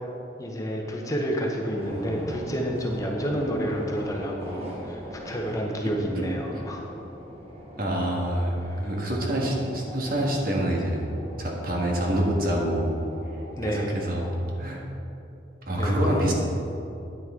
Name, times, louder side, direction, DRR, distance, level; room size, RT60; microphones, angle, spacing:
voice 1, 0.4-6.9 8.6-8.9 13.6-13.9 15.7-16.3, equal, 20° left, 0 dB, 0.8 m, -30 dB
sound 1, 1.5-14.5, equal, 35° right, 1.4 m, -41 dB
voice 2, 7.8-11.0 11.4-13.0 13.6-14.3 14.6-14.8 15.7-16.3, right 1 dB, 50° right, -1 dB, 1.5 m, -26 dB
9.3 x 9.2 x 3.6 m, 2.8 s
head